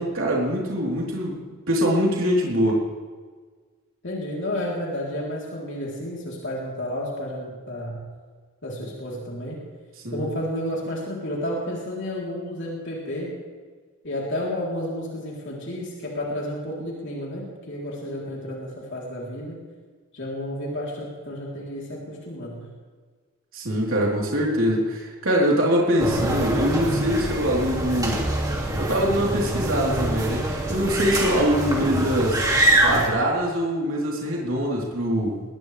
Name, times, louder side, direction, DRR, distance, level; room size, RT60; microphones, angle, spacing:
voice 1, 0.0-1.4 1.7-2.8 10.0-10.3 23.5-28.3 28.7-32.4 32.8-35.4, equal, 70° right, -3 dB, 3.8 m, -23 dB
voice 2, 4.0-8.0 8.6-9.6 10.1-13.4 14.0-19.6 20.1-22.7 31.7-31.9, left 1 dB, 60° left, -4 dB, 3.6 m, -31 dB
sound 1, 26.0-33.1, right 1 dB, 15° right, 2.4 m, -24 dB
21.0 x 20.0 x 3.4 m, 1.5 s
head